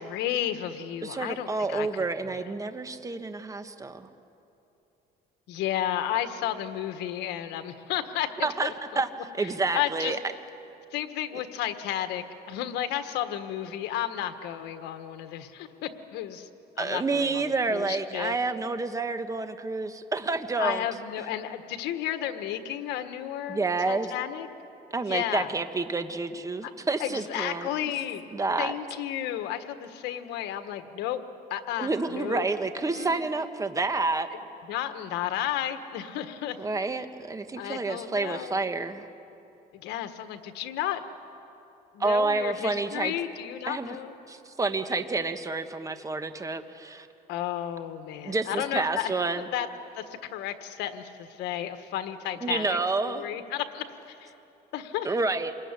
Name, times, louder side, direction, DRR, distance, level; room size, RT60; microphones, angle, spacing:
voice 1, 0.0-2.0 5.5-9.0 9.7-10.2 10.9-16.5 16.8-18.3 20.6-24.5 25.0-25.5 26.6-26.7 27.0-28.2 28.6-31.2 31.5-32.4 32.9-33.3 34.7-36.6 37.6-38.6 39.7-41.0 41.9-44.2 47.3-49.7 49.9-52.8 53.0-54.3 54.7-55.1, left 11 dB, 90° left, 9 dB, 1.5 m, -33 dB
voice 2, 1.0-4.1 8.4-9.1 9.3-10.2 11.3-11.4 16.8-20.8 23.5-24.1 24.9-27.7 28.3-28.7 31.8-34.3 36.6-39.1 42.0-43.1 43.7-43.9 44.3-47.1 48.2-49.5 52.4-53.2 55.0-55.5, right 3 dB, 20° right, 9 dB, 1.4 m, -29 dB
27.0 x 21.5 x 9.8 m, 3.0 s
cardioid pair, 110°, 17 cm